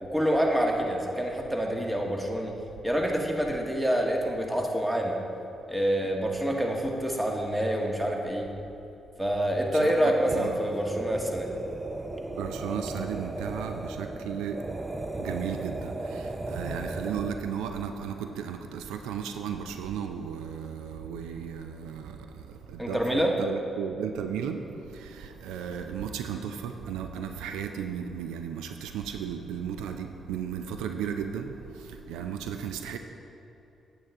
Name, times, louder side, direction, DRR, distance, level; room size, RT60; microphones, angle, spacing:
voice 1, 0.0-2.5 2.8-5.2 5.7-8.5 9.2-11.5 22.8-23.3, equal, 10° right, 0 dB, 1.4 m, -27 dB
voice 2, 9.8-10.6 12.3-14.7 15.2-33.0, right 7 dB, 85° right, 6 dB, 0.4 m, -35 dB
sound 1, 10.1-17.5, right 2 dB, 25° right, 0.5 m, -36 dB
8.7 x 8.0 x 3.6 m, 2.9 s
supercardioid pair, 55°, 0 cm